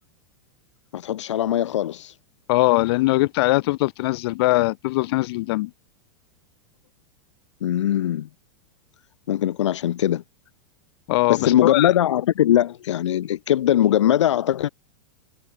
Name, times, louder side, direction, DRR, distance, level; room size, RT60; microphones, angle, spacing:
voice 1, 0.9-2.1 7.6-8.3 9.3-10.2 11.3-14.7, left 11 dB, 85° left, 3.0 m, -21 dB
voice 2, 2.5-5.7 11.1-11.9, left 20 dB, 60° left, 5.0 m, -21 dB
supercardioid pair, 140°, 15 cm